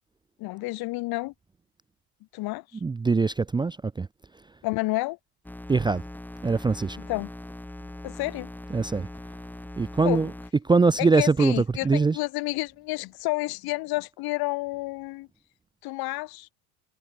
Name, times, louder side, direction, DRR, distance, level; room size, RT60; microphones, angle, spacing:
voice 1, 0.4-1.3 2.3-2.6 4.6-5.2 7.1-7.3 8.0-8.5 10.0-10.2 11.0-15.3 15.8-16.5, left 21 dB, 60° left, 2.1 m, -30 dB
voice 2, 2.8-4.1 5.7-6.0 6.4-7.0 8.7-9.1 9.8-10.3 10.6-12.2, right 4 dB, 10° right, 0.6 m, -22 dB
sound 1, 5.4-10.5, left 1 dB, 5° left, 2.1 m, -41 dB
supercardioid pair, 110°, 42 cm